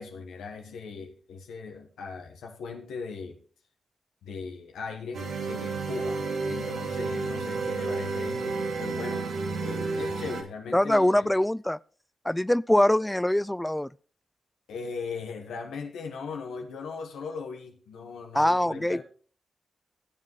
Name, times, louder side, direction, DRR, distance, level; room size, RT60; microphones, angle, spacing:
voice 1, 0.0-3.4 4.2-9.3 9.6-11.4 14.7-19.0, left 5 dB, 85° left, 1.2 m, -39 dB
sound 1, 5.1-10.4, right 4 dB, 75° right, 1.5 m, -31 dB
voice 2, 10.7-11.8 12.3-13.9 18.3-19.0, left 1 dB, 10° left, 0.3 m, -23 dB
16.5 x 7.5 x 3.1 m
supercardioid pair, 45°, 0 cm